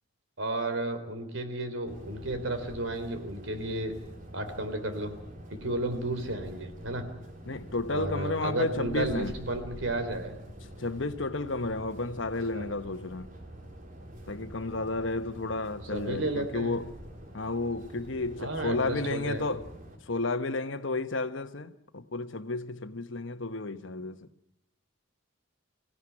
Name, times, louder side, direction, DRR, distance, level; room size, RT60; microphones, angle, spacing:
voice 1, 0.4-3.9 4.3-5.1 5.5-7.1 7.9-10.4 12.5-12.6 15.9-16.8 18.4-19.5, right 2 dB, 75° right, 3.7 m, -33 dB
sound 1, 1.9-20.0, equal, 40° right, 3.6 m, -46 dB
voice 2, 7.5-9.3 10.8-13.3 14.3-16.9 17.3-19.6 20.0-24.3, left 2 dB, 70° left, 1.2 m, -32 dB
25.0 x 17.0 x 9.9 m
head